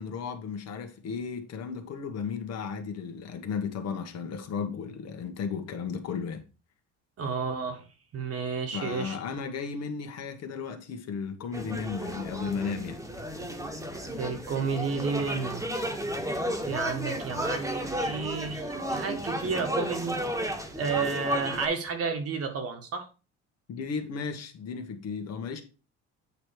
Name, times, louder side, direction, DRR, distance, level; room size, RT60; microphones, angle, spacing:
voice 1, 0.0-6.4 8.7-13.0 23.7-25.6, left 6 dB, 60° left, 1.4 m, -34 dB
voice 2, 7.2-7.9 8.1-9.2 14.2-15.6 16.6-23.1, right 5 dB, 50° right, 1.7 m, -31 dB
sound 1, 11.5-21.7, equal, 10° right, 1.5 m, -33 dB
8.5 x 3.1 x 4.9 m
supercardioid pair, 90°, 30 cm